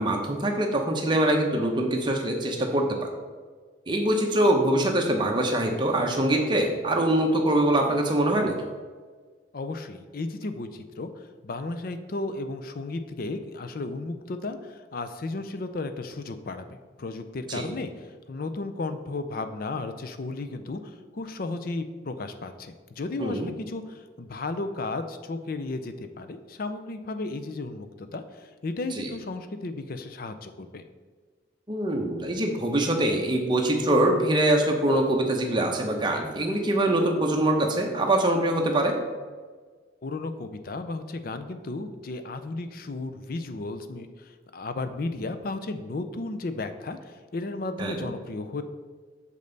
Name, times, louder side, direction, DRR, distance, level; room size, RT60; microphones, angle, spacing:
voice 1, 0.0-3.1 3.9-8.6 17.5-17.7 23.2-23.5 29.0-29.1 31.7-39.0 47.8-48.1, right 1 dB, 25° right, 1 dB, 0.8 m, -24 dB
voice 2, 9.5-30.8 40.0-48.6, left 2 dB, 45° left, 9 dB, 0.4 m, -34 dB
6.6 x 5.3 x 3.9 m, 1.5 s
head